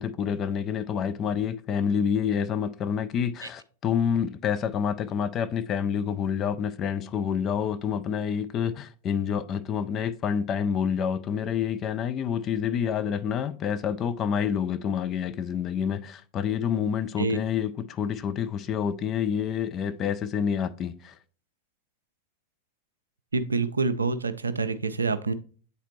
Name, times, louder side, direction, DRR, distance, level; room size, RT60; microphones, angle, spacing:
voice 1, 0.0-21.2, left 7 dB, 30° left, 0.4 m, -28 dB
voice 2, 23.3-25.3, right 4 dB, 75° right, 0.4 m, -26 dB
8.1 x 4.0 x 3.0 m
figure-of-eight pair, 90°, 0 cm